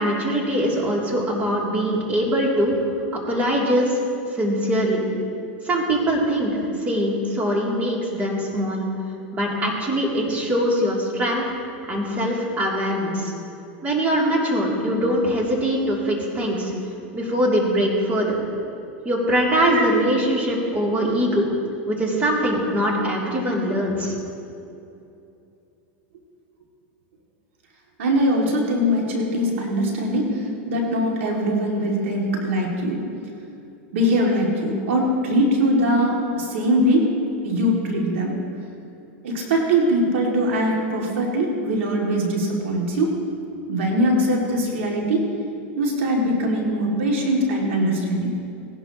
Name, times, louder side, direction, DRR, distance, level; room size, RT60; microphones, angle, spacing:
voice 1, 0.0-2.7 3.3-4.0 4.3-5.0 5.6-8.9 9.3-11.4 11.9-13.3 13.8-16.7 17.1-18.4 19.0-21.5 21.9-24.2, equal, 20° right, -3 dB, 2.9 m, -22 dB
voice 2, 28.0-33.0 33.9-37.1 37.4-38.3 39.2-43.1 43.7-45.2 45.8-48.3, equal, 85° right, -1 dB, 2.4 m, -21 dB
18.5 x 11.5 x 3.0 m, 2.7 s
supercardioid pair, 130°, 7 cm